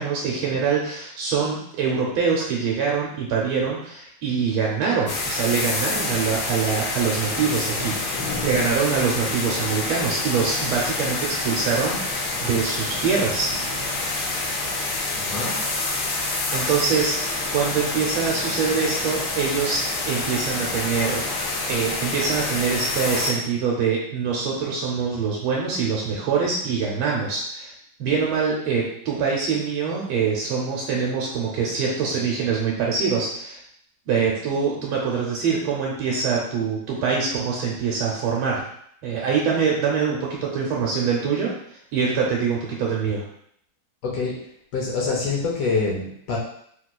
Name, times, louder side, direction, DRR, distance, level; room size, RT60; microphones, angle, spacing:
voice 1, 0.0-8.0 8.4-13.5 16.5-21.2 21.7-27.7 28.0-33.6 34.1-38.6 39.0-41.5 41.9-43.3, right 5 dB, 85° right, -3 dB, 1.4 m, -24 dB
sound 1, 5.1-23.3, left 2 dB, 85° left, 1.5 m, -27 dB
voice 2, 15.2-15.6 44.0-44.3 44.7-46.4, left 4 dB, 70° left, -2 dB, 1.0 m, -25 dB
3.3 x 2.9 x 2.2 m, 0.69 s
omnidirectional pair, 2.2 m